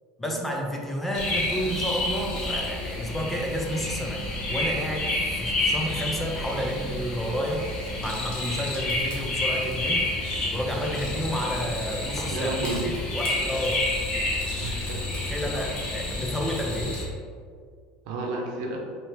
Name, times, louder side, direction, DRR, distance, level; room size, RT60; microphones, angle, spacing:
voice 1, 0.2-7.7 8.0-10.1 10.5-12.5 12.8-13.8 15.3-17.0, equal, 10° left, 0 dB, 0.5 m, -30 dB
sound 1, 1.1-17.0, left 2 dB, 40° left, 1.2 m, -29 dB
voice 2, 12.3-12.9 14.6-15.0 18.0-18.8, right 2 dB, 70° right, -1 dB, 0.9 m, -31 dB
4.3 x 2.9 x 3.2 m, 2.1 s
supercardioid pair, 115°, 2 cm